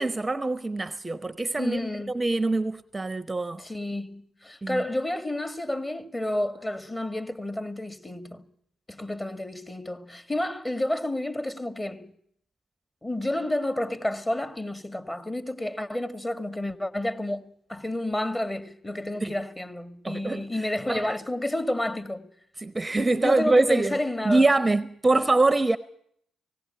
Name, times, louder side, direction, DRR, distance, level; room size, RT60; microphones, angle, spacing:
voice 1, 0.0-1.8 2.1-3.6 4.6-4.8 19.2-19.4 20.0-20.4 20.9-21.1 22.6-24.0 24.2-25.8, right 2 dB, 20° right, 0.8 m, -24 dB
voice 2, 1.6-2.2 3.6-8.5 8.9-12.1 13.0-17.4 17.7-22.3 23.1-24.5, left 1 dB, 20° left, 1.9 m, -30 dB
17.5 x 17.5 x 8.9 m
hypercardioid pair, 50°, 0 cm